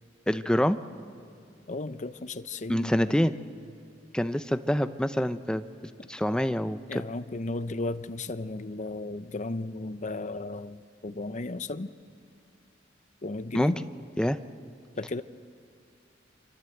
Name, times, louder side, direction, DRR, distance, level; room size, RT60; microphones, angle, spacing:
voice 1, 0.3-0.8 2.7-3.4 4.1-5.6 6.1-7.0 13.5-13.7 14.2-14.4, equal, 5° left, 0.6 m, -26 dB
voice 2, 1.7-3.2 6.9-11.9 13.2-13.8 15.0-15.2, left 2 dB, 40° left, 0.7 m, -35 dB
28.5 x 25.5 x 7.9 m
head